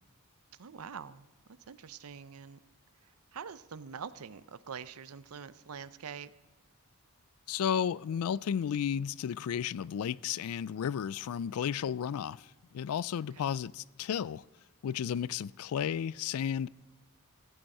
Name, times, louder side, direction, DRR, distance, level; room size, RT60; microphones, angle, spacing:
voice 1, 0.6-2.6 3.0-6.3 13.3-13.6, right 6 dB, 75° right, 0.6 m, -45 dB
voice 2, 7.5-12.4 12.7-14.4 14.8-16.7, left 8 dB, 70° left, 0.3 m, -33 dB
16.0 x 9.0 x 5.5 m
head